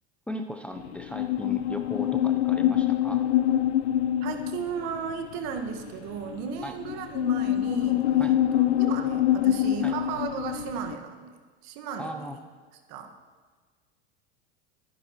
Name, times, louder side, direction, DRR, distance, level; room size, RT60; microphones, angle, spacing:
voice 1, 0.3-3.2 6.6-6.8 8.2-8.4 9.8-10.0 12.0-12.4, equal, 5° left, 4 dB, 0.7 m, -37 dB
sound 1, 0.8-11.0, left 12 dB, 80° left, 0.6 m, -25 dB
voice 2, 4.2-11.3 11.6-12.3 12.9-13.1, right 7 dB, 55° right, 4 dB, 1.8 m, -35 dB
25.0 x 9.9 x 3.1 m, 1.5 s
hypercardioid pair, 90°, 32 cm